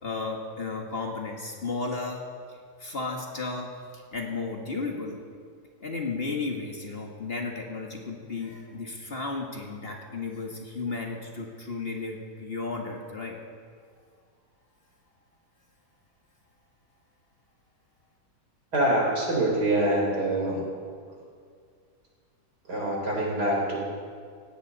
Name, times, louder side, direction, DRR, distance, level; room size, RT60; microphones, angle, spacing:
voice 1, 0.0-2.2 2.8-5.2 5.8-13.4, left 3 dB, 35° left, 1 dB, 1.7 m, -34 dB
voice 2, 18.7-20.7 22.7-23.9, right 1 dB, 75° right, -2 dB, 4.6 m, -25 dB
18.0 x 16.5 x 4.1 m, 2.1 s
omnidirectional pair, 1.8 m